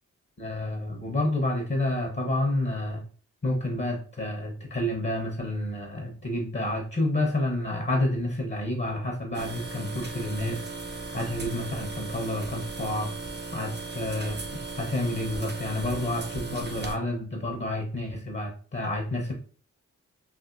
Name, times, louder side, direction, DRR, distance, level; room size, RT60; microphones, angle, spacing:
voice 1, 0.4-3.0 3.4-10.6 11.1-13.1 13.5-19.3, left 1 dB, 35° left, 1 dB, 0.9 m, -29 dB
sound 1, 9.3-16.9, right 3 dB, 30° right, 0.6 m, -37 dB
3.4 x 2.4 x 2.5 m, 0.42 s
cardioid pair, 45°, 34 cm